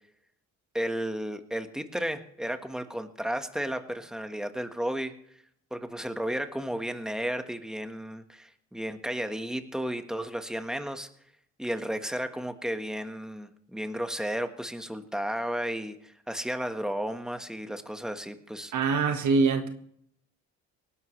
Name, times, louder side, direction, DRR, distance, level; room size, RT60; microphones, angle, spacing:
voice 1, 0.7-5.1 5.7-11.1 11.6-18.7, equal, ahead, 7 dB, 1.4 m, -33 dB
voice 2, 18.7-19.7, right 4 dB, 70° right, 6 dB, 1.6 m, -24 dB
19.0 x 11.0 x 3.3 m, 0.69 s
cardioid pair, 90°, 30 cm